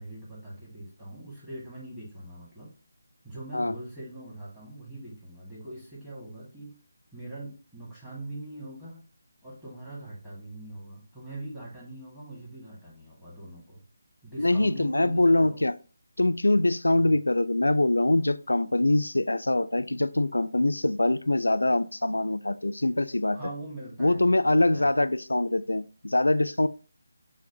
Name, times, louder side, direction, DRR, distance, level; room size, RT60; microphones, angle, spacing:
voice 1, 0.0-2.7 3.2-6.7 7.1-9.0 9.4-13.8 14.2-15.6 16.9-17.1 23.3-24.9, right 1 dB, 5° right, -8 dB, 1.5 m, -42 dB
voice 2, 14.4-15.7 16.2-23.4 24.0-26.7, left 2 dB, 85° left, 12 dB, 0.3 m, -24 dB
6.0 x 2.1 x 2.6 m, 0.37 s
figure-of-eight pair, 155°, 0 cm